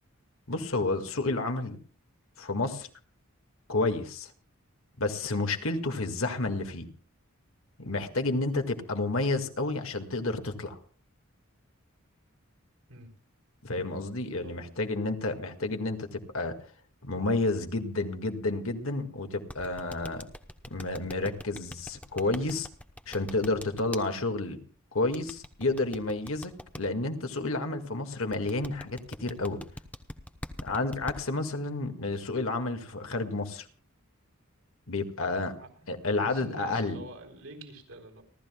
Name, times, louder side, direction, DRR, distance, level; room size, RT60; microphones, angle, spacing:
voice 1, 0.5-1.8 2.4-2.9 3.7-4.3 5.0-6.9 7.8-10.8 13.6-16.5 17.0-20.2 20.7-22.7 23.1-24.6 24.9-29.6 30.6-33.7 34.9-35.5 35.9-37.0, left 2 dB, 70° left, 6 dB, 2.0 m, -30 dB
voice 2, 14.4-14.8 31.5-31.6 35.6-35.7 36.1-38.2, right 2 dB, 75° right, 3 dB, 4.1 m, -46 dB
sound 1, 19.5-24.0 25.1-26.8 28.3-31.2, left 1 dB, 5° left, 1.0 m, -41 dB
30.0 x 13.0 x 2.3 m, 0.41 s
head